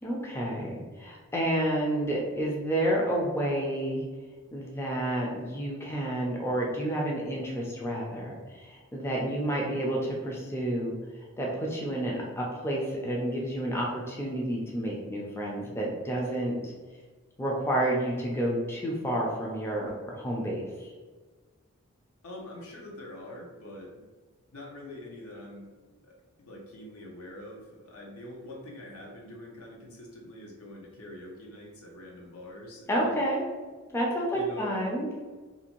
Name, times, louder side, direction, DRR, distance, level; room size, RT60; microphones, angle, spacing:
voice 1, 0.0-4.0 4.5-11.0 11.4-16.7 17.4-20.9 32.9-33.4 33.9-35.1, right 1 dB, 10° left, -3 dB, 0.4 m, -30 dB
voice 2, 22.2-24.0 24.5-25.7 26.0-33.2 34.3-34.8, left 1 dB, 75° left, -1 dB, 0.7 m, -44 dB
2.6 x 2.5 x 2.9 m, 1.4 s
head